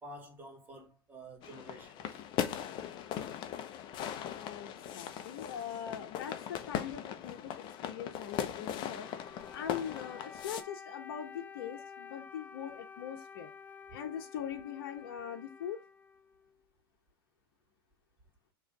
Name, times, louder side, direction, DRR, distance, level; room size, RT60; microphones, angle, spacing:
voice 1, 0.0-2.2, right 1 dB, 15° right, 2.7 m, -50 dB
sound 1, 1.4-10.6, left 9 dB, 40° left, 0.8 m, -39 dB
voice 2, 4.4-9.1 9.5-13.5 13.9-15.8, left 9 dB, 60° left, 1.1 m, -42 dB
Wind instrument woodwind instrument, 9.0-16.6, left 6 dB, 15° left, 0.5 m, -51 dB
6.1 x 3.2 x 5.3 m
hypercardioid pair, 105°, 13 cm